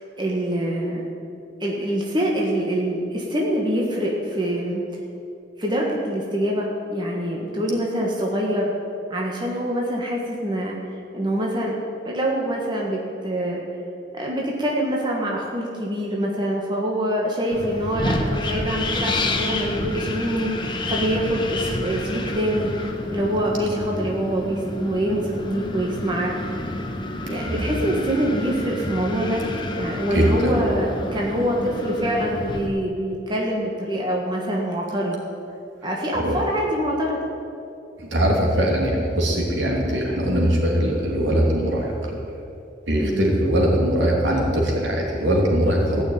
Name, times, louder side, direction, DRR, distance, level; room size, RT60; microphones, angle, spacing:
voice 1, 0.2-1.0 1.6-4.8 5.6-8.7 9.1-10.8 11.1-11.7 12.0-13.6 14.1-22.7 23.1-26.3 27.3-29.4 29.7-35.2 35.8-37.2 43.0-43.3 45.9-46.0, equal, 25° right, -2 dB, 1.6 m, -25 dB
Wind, 17.5-32.7, left 1 dB, 25° left, 1.0 m, -29 dB
voice 2, 27.4-27.8 30.1-30.6 36.2-36.4 38.0-42.0 42.9-46.0, equal, 75° right, -1 dB, 2.9 m, -21 dB
15.0 x 6.5 x 9.3 m, 2.7 s
head